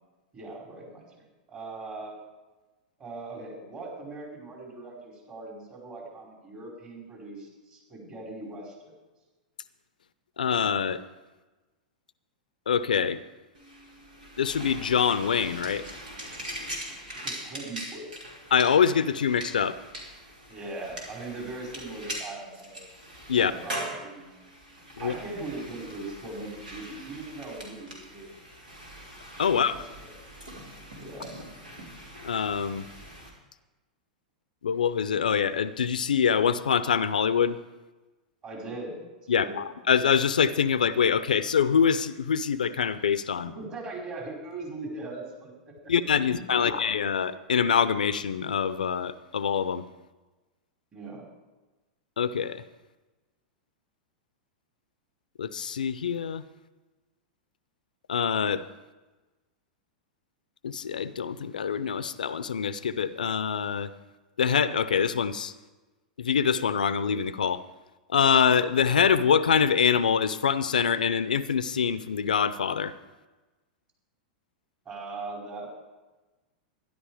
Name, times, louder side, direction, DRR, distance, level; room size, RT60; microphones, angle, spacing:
voice 1, 0.3-2.2 3.0-8.9 17.1-18.1 20.5-22.8 23.4-24.3 25.0-28.3 29.5-30.1 31.0-31.3 38.4-39.0 39.4-39.7 43.4-45.7 46.2-46.8 50.9-51.3 74.8-75.7, right 2 dB, 35° right, -1 dB, 5.0 m, -40 dB
voice 2, 10.4-11.0 12.7-13.2 14.4-15.8 18.5-19.8 23.3-23.5 25.0-25.1 29.4-29.8 32.2-32.8 34.6-37.6 39.3-43.5 45.9-49.8 52.2-52.6 55.4-56.4 58.1-58.6 60.6-63.9 64.4-65.5 66.2-67.6 68.1-72.9, left 7 dB, 85° left, 15 dB, 0.5 m, -25 dB
sound 1, 13.5-33.3, equal, 90° right, 3.3 m, -42 dB
13.0 x 11.0 x 4.9 m, 1.2 s
hypercardioid pair, 105°, 4 cm